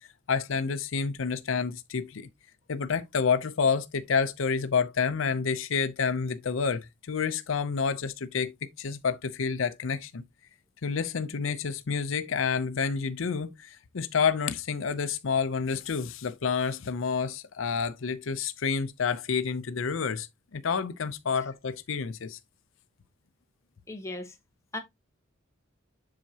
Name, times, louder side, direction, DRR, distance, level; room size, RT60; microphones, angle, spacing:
voice 1, 0.3-2.3 2.7-10.2 10.8-20.3 20.5-22.4, left 5 dB, 70° left, 0.6 m, -29 dB
voice 2, 23.9-24.4 24.7-24.8, left 2 dB, 15° left, 1.1 m, -37 dB
7.5 x 5.6 x 2.8 m
head